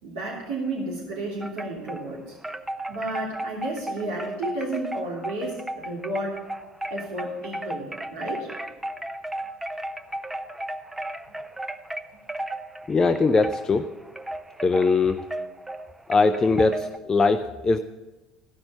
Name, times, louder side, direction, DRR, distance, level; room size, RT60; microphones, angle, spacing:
voice 1, 0.0-2.4 2.9-6.4 6.9-8.5, right 1 dB, 70° right, -3 dB, 2.9 m, -32 dB
Wind chime, 1.4-2.1 2.4-17.0, right 1 dB, 10° right, 0.7 m, -35 dB
voice 2, 12.9-13.9 14.6-15.3 16.1-17.8, left 4 dB, 25° left, 8 dB, 0.5 m, -21 dB
14.5 x 6.0 x 6.6 m, 1.1 s
hypercardioid pair, 65°, 2 cm